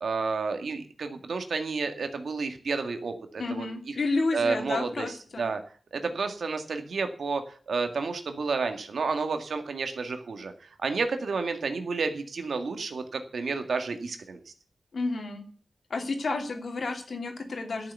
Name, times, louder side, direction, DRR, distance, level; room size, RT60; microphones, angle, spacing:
voice 1, 0.0-3.9 4.3-5.6 5.9-10.5 10.8-14.4, right 4 dB, 90° right, 7 dB, 1.9 m, -31 dB
voice 2, 3.4-5.5 14.9-15.4 15.9-17.9, left 3 dB, 70° left, 4 dB, 2.8 m, -31 dB
12.5 x 6.9 x 8.2 m, 0.43 s
wide cardioid pair, 80°, 0 cm